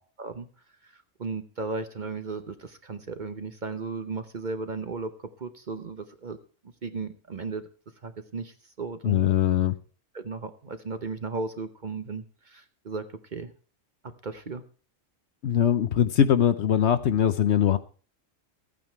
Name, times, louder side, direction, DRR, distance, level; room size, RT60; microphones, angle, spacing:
voice 1, 0.8-6.4 6.6-7.6 8.0-9.3 10.1-13.5 14.0-14.6, right 4 dB, 40° right, 9 dB, 0.9 m, -35 dB
voice 2, 9.0-9.7 15.4-17.8, left 9 dB, 60° left, 12 dB, 0.9 m, -22 dB
14.0 x 8.9 x 4.5 m, 0.40 s
omnidirectional pair, 1.4 m